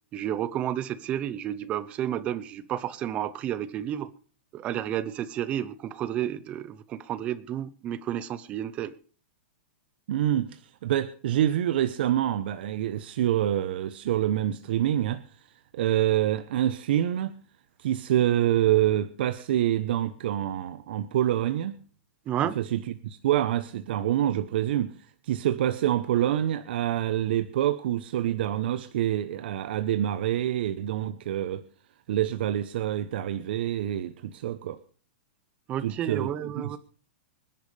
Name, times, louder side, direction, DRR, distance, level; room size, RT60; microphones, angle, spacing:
voice 1, 0.1-4.1 4.5-8.9 22.3-22.6 35.7-36.8, right 11 dB, 20° right, 0.6 m, -31 dB
voice 2, 10.1-15.4 15.7-17.4 17.8-21.8 22.6-31.6 32.1-34.8 35.8-36.3 36.6-36.8, right 12 dB, 55° right, 0.8 m, -26 dB
25.5 x 10.5 x 3.3 m
supercardioid pair, 175°, 6 cm